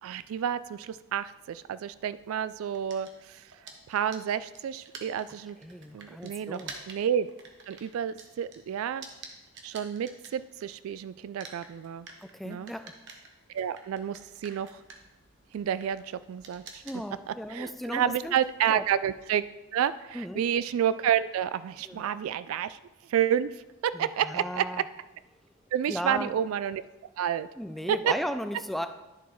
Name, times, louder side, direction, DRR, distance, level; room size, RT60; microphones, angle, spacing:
voice 1, 0.0-3.4 3.9-5.6 5.9-6.6 6.9-7.3 7.7-9.0 9.6-12.1 12.4-12.7 13.5-14.7 15.5-16.0 16.3-16.8 17.3-19.4 19.7-22.8 23.1-23.5 23.8-24.6 25.7-26.8 27.2-27.5 28.1-28.2, right 9 dB, 85° right, 16 dB, 0.3 m, -29 dB
sound 1, 2.7-10.9 11.2-19.4, right 4 dB, 60° right, 1.1 m, -49 dB
voice 2, 5.6-6.7 12.2-12.9 16.8-18.4 18.7-18.8 20.1-20.4 21.8-22.0 23.9-24.8 25.9-26.3 27.6-28.9, equal, ahead, 9 dB, 0.3 m, -36 dB
11.0 x 7.0 x 3.1 m, 1.0 s
head